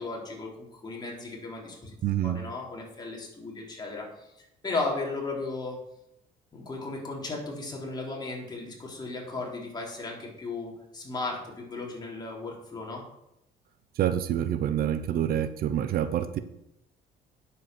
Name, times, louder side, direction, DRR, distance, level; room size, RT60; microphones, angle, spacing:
voice 1, 0.0-2.0 2.2-4.3 4.6-5.8 6.5-13.0, left 3 dB, 25° left, -2 dB, 3.8 m, -35 dB
voice 2, 2.0-2.4 14.0-16.4, right 10 dB, 60° right, 12 dB, 0.8 m, -27 dB
9.6 x 7.8 x 6.1 m, 0.82 s
cardioid pair, 110°, 17 cm